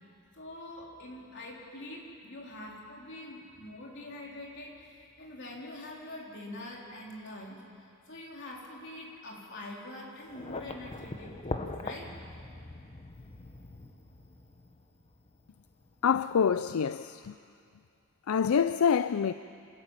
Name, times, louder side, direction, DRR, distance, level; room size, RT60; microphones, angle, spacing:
voice 1, 0.3-7.6 8.1-12.1, left 1 dB, 60° left, 3.9 m, -44 dB
sound 1, 10.2-16.7, left 2 dB, 30° left, 1.2 m, -42 dB
voice 2, 16.0-17.3 18.3-19.3, left 7 dB, 80° left, 0.4 m, -26 dB
26.5 x 14.0 x 8.9 m
head